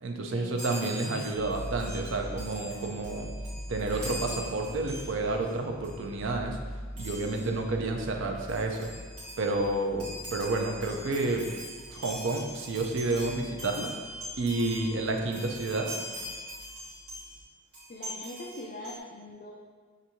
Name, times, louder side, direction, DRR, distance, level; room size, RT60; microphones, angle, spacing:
voice 1, 0.0-3.3 3.7-6.6 7.0-8.9 9.4-11.5 11.9-13.9 14.4-15.9, right 2 dB, 60° right, 2 dB, 0.4 m, -30 dB
Chime, 0.6-5.5 5.8-6.1 7.0-7.6 8.1-8.2 8.4-17.4 17.7-19.0, equal, 80° right, 1.3 m, -42 dB
sound 1, 1.3-17.4, equal, 10° right, 1.0 m, -44 dB
voice 2, 17.9-19.5, left 1 dB, 40° left, -4 dB, 0.4 m, -42 dB
5.9 x 2.6 x 2.8 m, 1.5 s
head